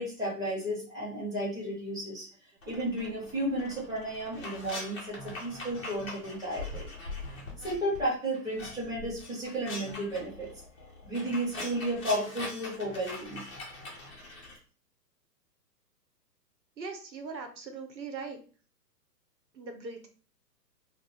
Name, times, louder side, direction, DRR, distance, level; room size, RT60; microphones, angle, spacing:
voice 1, 0.0-2.3 2.7-6.9 7.3-10.5 11.0-13.4, right 1 dB, 5° right, -7 dB, 1.1 m, -33 dB
sound 1, 2.6-8.0 8.3-14.6, left 2 dB, 20° left, 0.5 m, -42 dB
voice 2, 16.8-18.4 19.6-20.1, right 4 dB, 90° right, 5 dB, 0.8 m, -40 dB
2.5 x 2.1 x 3.2 m, 0.39 s
figure-of-eight pair, 120°, 50 cm